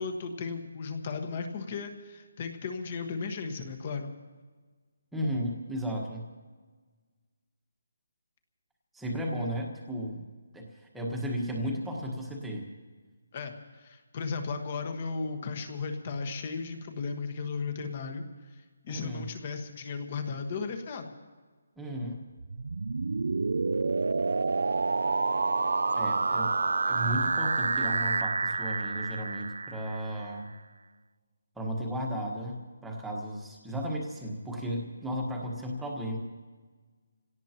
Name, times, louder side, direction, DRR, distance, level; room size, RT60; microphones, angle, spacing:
voice 1, 0.0-4.1 13.3-18.2 18.5-21.1, left 4 dB, 25° left, 6 dB, 1.4 m, -35 dB
voice 2, 5.1-6.3 8.9-10.3 10.5-12.7 18.9-19.3 21.8-22.2 25.9-30.5 31.5-36.2, equal, 5° right, -1 dB, 1.4 m, -34 dB
sound 1, 22.4-30.3, right 3 dB, 75° right, 0.4 m, -28 dB
28.0 x 17.5 x 3.0 m, 1.4 s
hypercardioid pair, 175°, 0 cm